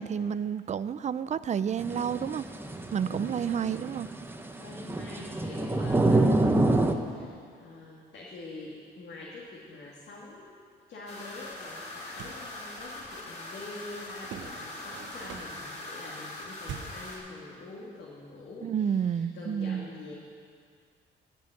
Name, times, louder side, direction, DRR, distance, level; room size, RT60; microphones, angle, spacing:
voice 1, 0.0-2.5 2.9-4.1 18.6-19.9, right 8 dB, 35° right, 15 dB, 0.4 m, -30 dB
sound 1, 1.8-6.9, right 2 dB, 10° right, 0.8 m, -27 dB
voice 2, 3.0-3.8 4.6-10.5 10.9-20.1, left 2 dB, 60° left, -4 dB, 1.9 m, -45 dB
sound 2, 11.1-17.2, left 2 dB, 35° left, 3.0 m, -42 dB
sound 3, 12.0-12.5 14.2-15.7 16.6-17.1, right 7 dB, 70° right, 0.9 m, -43 dB
15.5 x 5.4 x 7.8 m, 2.2 s
cardioid pair, 90°, 20 cm